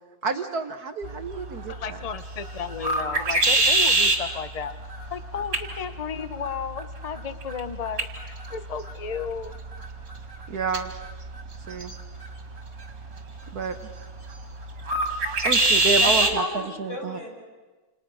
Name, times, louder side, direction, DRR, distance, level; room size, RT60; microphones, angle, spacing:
voice 1, 0.2-2.0 10.5-10.9 11.7-11.9 13.5-13.8 15.0-16.4 16.8-17.2, right 4 dB, 55° right, 7 dB, 1.4 m, -29 dB
sound 1, 1.0-16.4, right 2 dB, 35° right, 2.8 m, -27 dB
voice 2, 1.7-4.7 5.1-9.5, left 6 dB, 90° left, 11 dB, 0.3 m, -33 dB
voice 3, 16.0-17.3, left 1 dB, 50° left, -1 dB, 6.6 m, -32 dB
28.5 x 28.0 x 6.3 m, 1.3 s
omnidirectional pair, 2.3 m